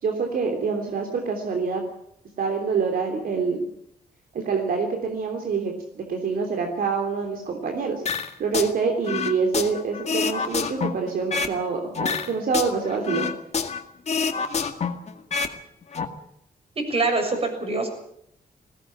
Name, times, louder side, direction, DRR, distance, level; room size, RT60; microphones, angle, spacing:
voice 1, 0.0-1.8 2.4-3.7 4.3-8.0 8.4-13.3, right 5 dB, 70° right, 3 dB, 3.3 m, -26 dB
sound 1, 8.1-8.7 9.0-11.6 11.9-13.8 14.1-15.5 15.8-16.0, left 5 dB, 45° left, 2.0 m, -27 dB
voice 2, 16.7-17.9, right 3 dB, 40° right, 5 dB, 6.8 m, -24 dB
20.0 x 17.5 x 9.0 m, 0.72 s
wide cardioid pair, 125°, 16 cm